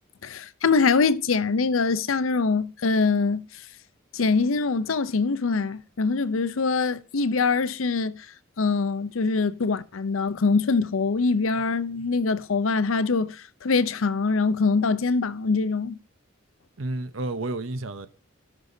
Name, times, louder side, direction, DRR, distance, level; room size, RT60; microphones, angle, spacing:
voice 1, 0.2-3.4 4.1-8.2 8.6-16.0, left 4 dB, 70° left, 0.6 m, -23 dB
voice 2, 16.8-18.1, right 2 dB, 70° right, 0.8 m, -31 dB
16.5 x 6.2 x 2.7 m
head